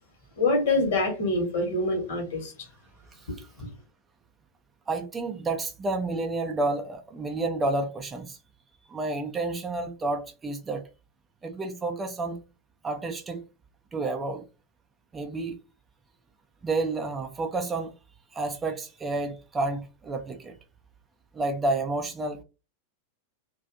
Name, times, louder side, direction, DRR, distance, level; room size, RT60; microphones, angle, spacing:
voice 1, 0.4-2.5 3.6-3.7, left 2 dB, 55° left, 1.1 m, -25 dB
voice 2, 3.1-3.5 4.9-8.4 8.9-10.8 11.4-12.4 12.8-13.4 13.9-14.4 15.1-15.6 16.6-17.9 18.3-20.6 21.3-22.4, right 2 dB, 15° right, 0.4 m, -30 dB
2.4 x 2.3 x 2.5 m
figure-of-eight pair, 90°, 0 cm